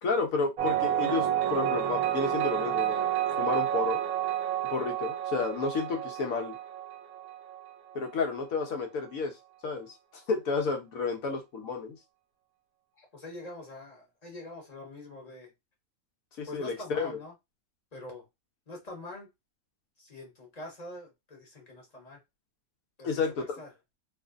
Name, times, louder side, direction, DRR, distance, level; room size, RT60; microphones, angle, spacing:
voice 1, 0.0-3.1 3.4-4.0 4.7-6.5 7.9-9.3 9.6-9.9 10.3-12.0 16.4-17.2 23.0-23.4, left 4 dB, 70° left, 1.2 m, -31 dB
sound 1, 0.6-8.1, right 11 dB, 80° right, 1.1 m, -30 dB
voice 2, 13.0-15.5 16.5-17.3 17.9-18.2 18.7-19.3 20.0-22.2 23.0-23.7, left 2 dB, 30° left, 1.1 m, -44 dB
3.2 x 2.5 x 2.4 m
omnidirectional pair, 1.6 m